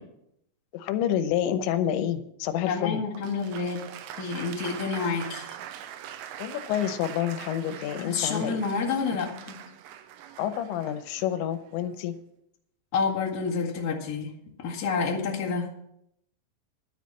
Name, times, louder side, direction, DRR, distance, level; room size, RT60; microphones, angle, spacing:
voice 1, 0.7-3.0 6.4-8.7 10.4-12.2, left 10 dB, 85° left, 11 dB, 3.1 m, -28 dB
voice 2, 2.6-3.8 4.2-5.5 8.0-9.6 12.9-14.3 14.6-15.7, left 5 dB, 45° left, -3 dB, 1.2 m, -29 dB
Applause, 3.2-12.1, right 10 dB, 85° right, 2.9 m, -43 dB
11.0 x 7.4 x 7.5 m, 0.78 s
omnidirectional pair, 5.1 m